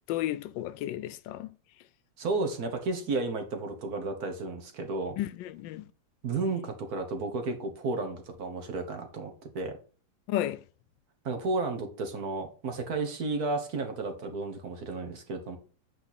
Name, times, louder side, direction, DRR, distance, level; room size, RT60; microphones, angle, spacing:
voice 1, 0.1-1.5 5.2-5.9 10.3-10.6, left 13 dB, 85° left, 1.3 m, -33 dB
voice 2, 2.2-5.2 6.2-9.8 11.3-15.6, right 3 dB, 60° right, 1.7 m, -32 dB
8.5 x 4.4 x 4.1 m
omnidirectional pair, 1.9 m